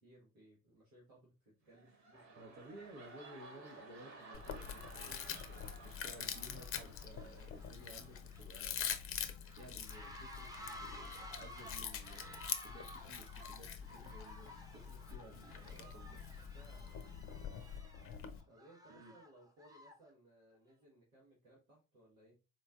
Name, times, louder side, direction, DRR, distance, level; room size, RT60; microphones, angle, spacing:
voice 1, 0.0-2.5 5.0-5.4 15.6-16.0 16.5-17.2 18.5-22.3, right 1 dB, 90° right, 1.3 m, -64 dB
sound 1, 1.6-7.6 7.9-8.3, right 3 dB, 45° right, 1.3 m, -56 dB
voice 2, 2.4-5.2 5.5-8.9 9.6-16.2 18.9-19.1, right 1 dB, 65° right, 1.0 m, -56 dB
sound 2, 3.5-3.8 4.1-20.1, equal, 10° right, 0.7 m, -55 dB
Chewing mastication, 4.3-18.4, left 8 dB, 35° left, 0.6 m, -45 dB
4.0 x 3.1 x 2.3 m
figure-of-eight pair, 60°, 40 cm